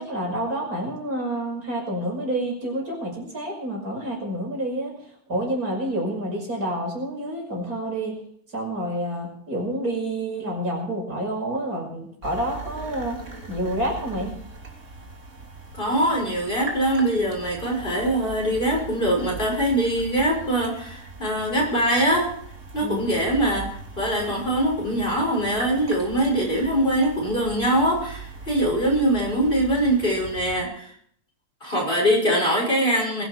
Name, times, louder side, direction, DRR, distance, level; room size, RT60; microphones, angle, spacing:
voice 1, 0.0-4.9 5.3-8.2 8.5-13.2 13.5-14.4 22.8-23.1, right 1 dB, 65° right, -1 dB, 6.2 m, -28 dB
sound 1, 12.2-30.6, right 3 dB, 45° right, 3.4 m, -40 dB
voice 2, 15.7-22.3 22.7-23.7 24.0-30.9 31.6-33.2, right 1 dB, 30° left, -1 dB, 6.4 m, -23 dB
21.5 x 12.0 x 4.6 m, 0.63 s
omnidirectional pair, 1.7 m